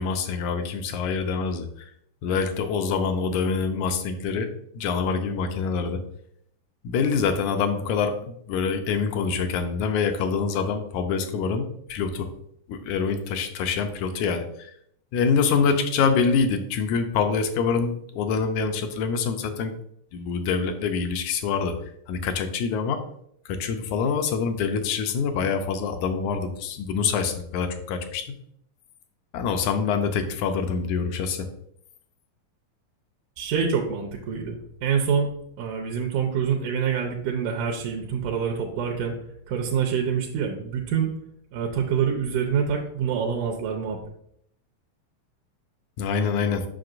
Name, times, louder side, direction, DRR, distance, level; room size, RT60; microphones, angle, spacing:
voice 1, 0.0-1.6 2.2-4.5 4.8-6.0 6.9-8.2 8.5-12.3 12.7-14.4 15.1-19.7 20.1-21.7 22.1-23.0 23.6-28.2 29.3-31.4 46.0-46.6, left 5 dB, 80° left, 7 dB, 1.9 m, -25 dB
voice 2, 33.4-35.3 35.6-39.1 39.5-41.1 41.5-44.0, right 7 dB, 85° right, 2 dB, 2.2 m, -26 dB
7.7 x 5.9 x 2.5 m, 0.70 s
omnidirectional pair, 3.6 m